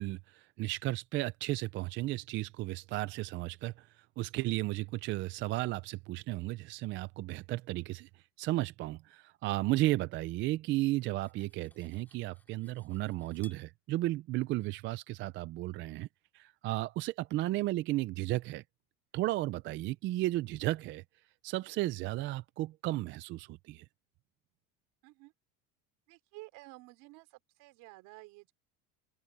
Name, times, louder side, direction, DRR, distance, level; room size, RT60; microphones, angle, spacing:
voice 1, 0.0-16.1 16.3-18.6 19.1-21.0 21.4-23.8, right 17 dB, 35° right, 0.4 m, -34 dB
Cutlery silverware, 10.5-13.7, left 2 dB, 5° left, 2.7 m, -63 dB
voice 2, 26.1-28.5, right 23 dB, 65° right, 5.1 m, -52 dB
cardioid pair, 160°, 34 cm